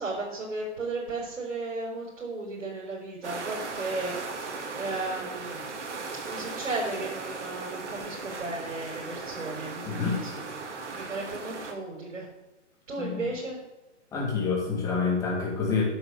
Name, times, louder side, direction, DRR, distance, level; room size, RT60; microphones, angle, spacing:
voice 1, 0.0-10.6 10.9-12.3 12.9-13.6, right 2 dB, 85° right, -4 dB, 5.1 m, -35 dB
sound 1, 3.2-11.7, right 4 dB, 65° right, 2.4 m, -37 dB
voice 2, 9.9-10.2 13.0-13.2 14.1-15.8, left 5 dB, 10° left, -3 dB, 2.1 m, -27 dB
10.0 x 6.8 x 8.4 m, 1.0 s
hypercardioid pair, 165°, 37 cm